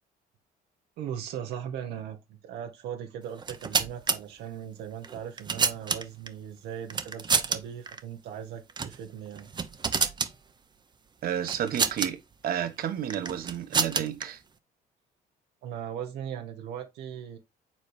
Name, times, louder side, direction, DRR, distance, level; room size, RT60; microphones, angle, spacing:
voice 1, 1.0-2.2 2.4-9.5 15.6-17.4, right 9 dB, 80° right, 1.1 m, -38 dB
sound 1, 3.4-4.2 5.0-6.3 6.9-7.6 7.9-8.0 8.7-9.0 9.3-10.3 11.5-12.1 13.1-14.2, right 5 dB, 25° right, 0.7 m, -28 dB
voice 2, 11.2-12.2 12.4-14.4, right 9 dB, 60° right, 1.2 m, -31 dB
7.3 x 4.0 x 3.2 m
cardioid pair, 110°, 17 cm